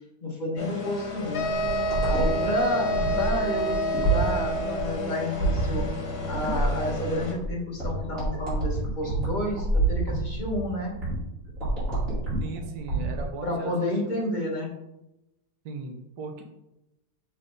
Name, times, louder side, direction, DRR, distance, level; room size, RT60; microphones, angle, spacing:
voice 1, 0.2-1.5 2.1-3.8 4.0-5.9 6.3-10.9 13.4-14.7, left 1 dB, 45° left, -1 dB, 0.6 m, -30 dB
sound 1, 0.6-7.3, left 3 dB, 70° left, 1.8 m, -33 dB
sound 2, 1.3-5.0, right 1 dB, 85° left, 0.8 m, -28 dB
sound 3, 1.4-13.3, right 2 dB, 35° right, 2.7 m, -28 dB
voice 2, 12.4-14.3 15.6-16.4, right 3 dB, 60° right, 4 dB, 1.3 m, -38 dB
6.7 x 3.8 x 3.8 m, 0.90 s
omnidirectional pair, 2.4 m